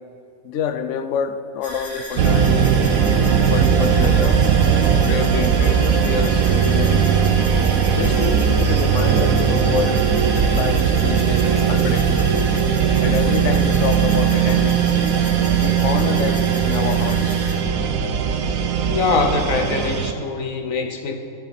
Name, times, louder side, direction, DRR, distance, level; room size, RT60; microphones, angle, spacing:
voice 1, 0.4-2.7 3.5-4.4 5.0-7.2 7.9-10.0 10.3-12.3 13.0-14.8 15.5-17.4 18.2-18.4, left 7 dB, 70° left, 10 dB, 1.0 m, -27 dB
sound 1, 1.6-17.5, left 1 dB, 45° left, 3.0 m, -34 dB
sound 2, 2.2-20.1, right 7 dB, 90° right, 1.2 m, -18 dB
voice 2, 18.9-21.2, left 4 dB, 90° left, 5 dB, 1.4 m, -23 dB
16.0 x 9.0 x 4.2 m, 2.6 s
omnidirectional pair, 1.4 m